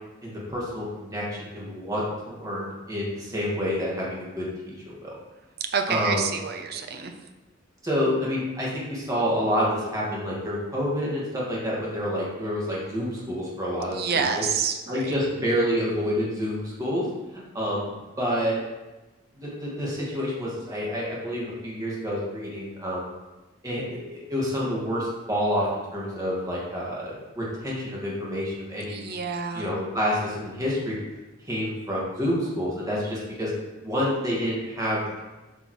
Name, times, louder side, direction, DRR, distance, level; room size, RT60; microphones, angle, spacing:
voice 1, 0.2-4.5 4.9-5.1 5.9-6.2 7.8-14.4 14.9-17.1 17.3-18.6 19.4-23.1 23.6-29.1 29.5-31.0 31.5-33.5 33.8-35.2, equal, 20° right, -6 dB, 2.0 m, -28 dB
voice 2, 5.7-7.1 13.9-15.1 28.9-29.7, right 6 dB, 55° right, 5 dB, 0.7 m, -28 dB
8.1 x 5.5 x 3.2 m, 1.1 s
head